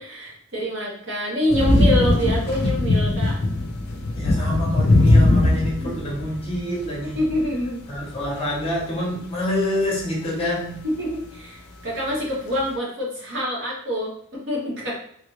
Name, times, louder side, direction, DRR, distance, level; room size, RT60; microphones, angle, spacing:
voice 1, 0.0-3.4 5.8-5.9 7.0-7.8 10.8-14.9, equal, 55° right, -3 dB, 1.1 m, -26 dB
sound 1, 1.5-7.6 7.9-8.4 8.8-8.9 9.4-9.5 10.0-10.1 10.7-10.8, left 2 dB, 50° left, 0.5 m, -20 dB
voice 2, 4.1-7.2 7.9-10.8, left 1 dB, 25° left, -4 dB, 1.0 m, -26 dB
3.3 x 2.5 x 3.2 m, 0.63 s
head